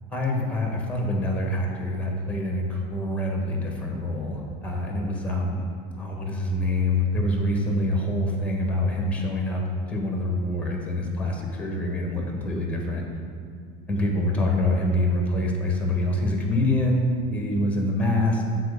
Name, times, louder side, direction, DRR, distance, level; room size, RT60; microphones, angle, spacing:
voice 1, 0.1-5.6 5.9-13.0 13.9-18.4, left 1 dB, 5° left, 0 dB, 1.4 m, -25 dB
7.6 x 4.2 x 6.8 m, 2.2 s
supercardioid pair, 130°, 21 cm